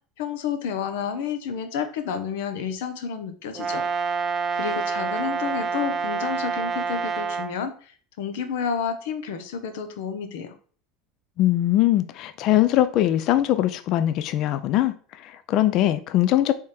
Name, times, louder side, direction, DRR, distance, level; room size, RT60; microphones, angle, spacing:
voice 1, 0.2-3.8 4.5-10.5, left 7 dB, 80° left, 0.7 m, -30 dB
Brass instrument, 3.5-7.5, right 5 dB, 30° right, 0.5 m, -27 dB
voice 2, 11.4-16.5, left 13 dB, 50° left, 0.3 m, -21 dB
4.2 x 3.4 x 3.2 m
supercardioid pair, 135°, 0 cm